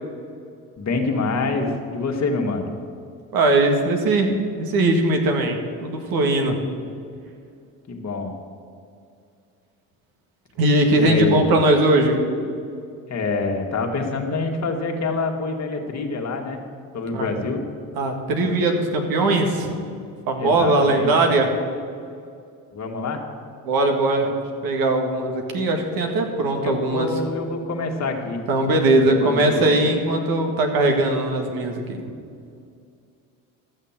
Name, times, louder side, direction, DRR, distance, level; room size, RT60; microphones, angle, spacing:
voice 1, 0.8-2.7 7.9-8.3 11.0-11.6 13.1-16.6 16.9-17.6 20.4-21.1 22.7-23.2 26.6-28.4 29.0-29.7, left 3 dB, 40° left, 2 dB, 2.0 m, -26 dB
voice 2, 3.3-4.3 4.6-6.6 10.6-12.2 17.1-17.3 18.0-19.7 20.3-21.5 23.6-27.1 28.5-31.8, right 2 dB, 60° right, 3 dB, 2.0 m, -20 dB
13.5 x 6.5 x 7.4 m, 2.4 s
hypercardioid pair, 65°, 39 cm